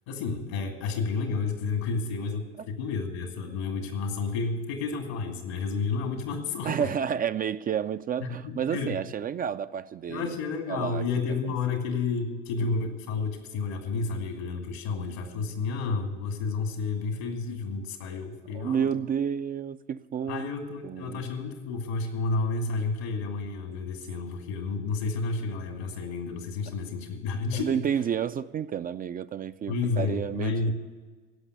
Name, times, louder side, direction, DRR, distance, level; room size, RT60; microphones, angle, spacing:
voice 1, 0.1-6.9 8.2-9.0 10.1-19.0 20.3-27.9 29.7-30.7, left 4 dB, 80° left, 2.3 m, -31 dB
voice 2, 6.6-10.2 10.7-11.0 11.4-11.5 18.5-20.5 20.8-21.2 27.5-30.7, right 8 dB, 30° right, 0.4 m, -30 dB
15.5 x 5.9 x 9.5 m
hypercardioid pair, 75°, 31 cm